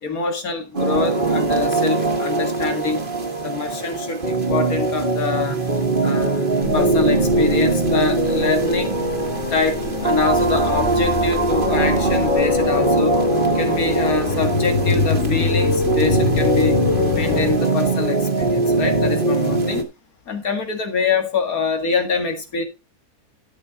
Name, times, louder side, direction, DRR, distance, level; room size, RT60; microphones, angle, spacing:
voice 1, 0.0-3.0 3.4-5.6 6.0-6.5 6.7-9.0 9.5-13.1 13.5-16.8 17.1-19.9 20.3-22.6, left 4 dB, 80° left, 2.4 m, -24 dB
sound 1, 0.7-19.8, right 3 dB, 35° right, 1.8 m, -22 dB
sound 2, 6.6-17.6, left 3 dB, 55° left, 2.3 m, -23 dB
12.5 x 6.4 x 4.0 m
omnidirectional pair, 1.5 m